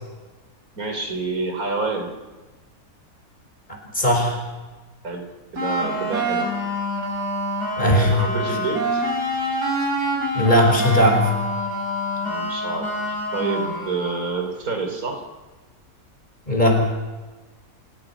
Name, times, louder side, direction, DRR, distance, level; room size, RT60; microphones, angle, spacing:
voice 1, 0.8-2.1 5.0-5.3 5.5-6.5 7.8-9.0 12.2-15.2, right 4 dB, 65° right, 5 dB, 3.9 m, -28 dB
voice 2, 3.9-4.4 7.8-8.1 10.3-11.3 16.5-16.8, left 1 dB, 30° left, 2 dB, 5.7 m, -18 dB
sound 1, 5.6-14.4, equal, 90° right, 6.1 m, -26 dB
30.0 x 17.0 x 5.9 m, 1.2 s
omnidirectional pair, 1.6 m